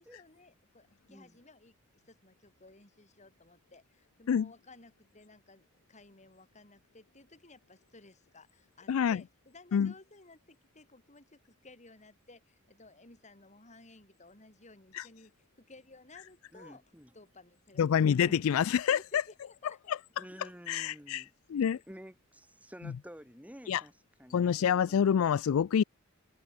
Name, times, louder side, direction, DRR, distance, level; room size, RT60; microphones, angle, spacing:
voice 1, 0.0-15.3 15.6-16.8 17.1-18.1 18.9-20.0 21.5-21.8, left 2 dB, 35° left, 4.7 m, -57 dB
voice 2, 8.9-9.2 9.7-9.9 14.9-15.0 17.8-19.2 19.9-20.0 20.7-21.2 21.5-21.8 23.7-23.8 24.3-25.8, left 8 dB, 80° left, 0.4 m, -27 dB
voice 3, 16.5-17.1 18.2-18.5 20.2-21.3 21.7-23.9 24.2-25.2, equal, 5° right, 5.2 m, -51 dB
head